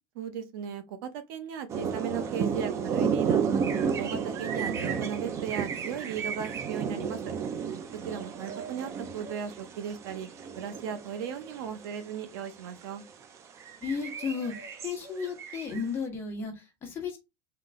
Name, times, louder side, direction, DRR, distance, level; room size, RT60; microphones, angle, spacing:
voice 1, 0.1-3.4 4.0-7.3 8.1-10.3 10.6-13.0, right 7 dB, 70° right, 0.8 m, -36 dB
sound 1, 1.7-12.2 12.6-12.8 13.2-15.8, right 6 dB, 25° right, 0.5 m, -32 dB
voice 2, 13.8-14.5 14.8-17.2, left 5 dB, 20° left, 1.3 m, -34 dB
3.9 x 2.9 x 3.5 m
supercardioid pair, 175°, 12 cm